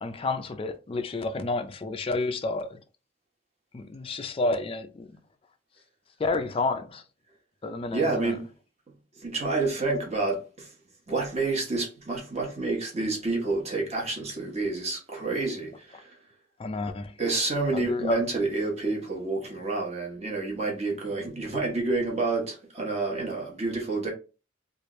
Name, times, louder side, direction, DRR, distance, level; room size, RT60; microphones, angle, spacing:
voice 1, 0.0-2.8 3.7-5.1 6.2-7.0 7.6-8.4 16.6-17.1 17.7-18.2, left 2 dB, 30° left, 0.4 m, -30 dB
voice 2, 7.9-8.5 9.2-10.7 11.1-16.1 17.2-24.1, right 3 dB, 35° right, 1.0 m, -29 dB
3.2 x 2.5 x 3.0 m
head